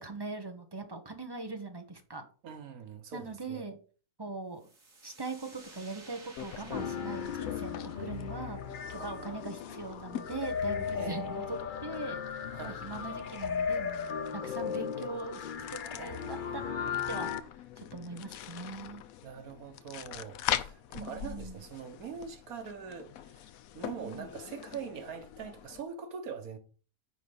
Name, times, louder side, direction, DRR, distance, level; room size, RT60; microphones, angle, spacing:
voice 1, 0.0-2.2 3.1-3.8 4.2-4.7 5.0-17.3 17.8-19.0 21.0-21.6 23.9-24.3, right 3 dB, 20° right, 1.1 m, -41 dB
voice 2, 2.4-3.7 9.0-9.5 11.0-11.4 12.5-12.9 16.0-16.6 19.2-26.6, right 6 dB, 90° right, 1.6 m, -43 dB
sound 1, 4.6-12.2, right 2 dB, 65° right, 2.6 m, -56 dB
sound 2, 6.4-25.8, left 11 dB, 80° left, 1.1 m, -43 dB
sound 3, 6.7-17.4, left 7 dB, 50° left, 0.6 m, -36 dB
9.7 x 4.1 x 5.3 m
omnidirectional pair, 1.5 m